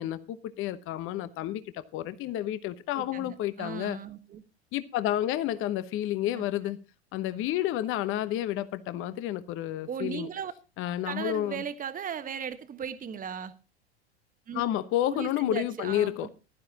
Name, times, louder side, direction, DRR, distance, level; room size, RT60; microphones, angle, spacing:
voice 1, 0.0-4.0 4.7-6.8 7.1-10.3 10.8-11.6 14.5-16.3, left 13 dB, 40° left, 1.0 m, -30 dB
voice 2, 3.0-4.4 6.3-6.4 9.9-10.5 11.0-13.5 14.5-14.7 15.1-16.3, right 8 dB, 25° right, 1.3 m, -37 dB
15.5 x 12.0 x 2.9 m
hypercardioid pair, 95°, 34 cm